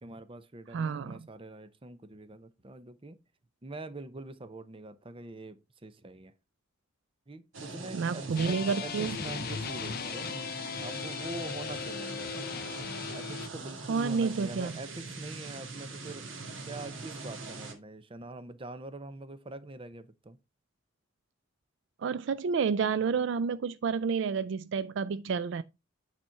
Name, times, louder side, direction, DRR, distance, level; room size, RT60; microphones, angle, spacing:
voice 1, 0.0-3.2 3.6-6.3 7.3-10.3 10.8-12.5 13.1-16.3 16.6-20.4, right 2 dB, 25° right, 0.7 m, -44 dB
voice 2, 0.7-1.2 7.9-9.2 13.9-14.7 22.0-25.6, right 5 dB, 65° right, 0.4 m, -30 dB
sound 1, 7.5-17.7, right 3 dB, 80° right, 1.9 m, -42 dB
sound 2, 8.4-13.5, left 7 dB, 50° left, 0.5 m, -38 dB
8.9 x 4.2 x 4.6 m
head